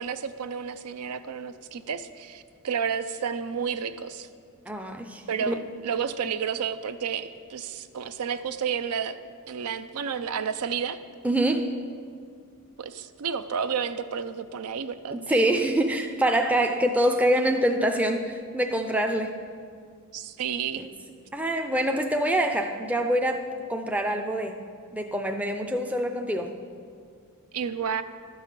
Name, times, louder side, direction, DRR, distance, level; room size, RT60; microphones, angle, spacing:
voice 1, 0.0-4.3 5.3-9.2 9.5-11.0 12.8-15.5 20.1-20.8 27.5-28.0, right 7 dB, 85° right, 11 dB, 0.5 m, -31 dB
voice 2, 4.7-5.5 11.2-11.7 15.1-19.3 20.8-20.9 21.3-23.4 23.7-24.5 24.9-26.5, right 1 dB, 5° right, 4 dB, 0.4 m, -25 dB
12.0 x 5.5 x 6.6 m, 2.2 s
head